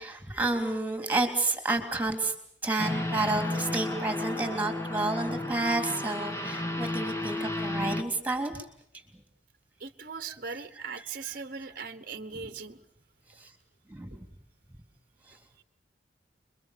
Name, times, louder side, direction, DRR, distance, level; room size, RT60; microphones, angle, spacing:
voice 1, 0.0-2.3 2.6-8.5 10.5-10.6 12.3-12.5 13.4-13.5 13.9-14.2, right 2 dB, 10° right, 5 dB, 3.6 m, -30 dB
sound 1, 2.8-8.0, left 1 dB, 15° left, 1.6 m, -32 dB
voice 2, 9.8-12.8, right 5 dB, 50° right, 10 dB, 1.2 m, -39 dB
29.5 x 23.0 x 6.9 m, 0.66 s
head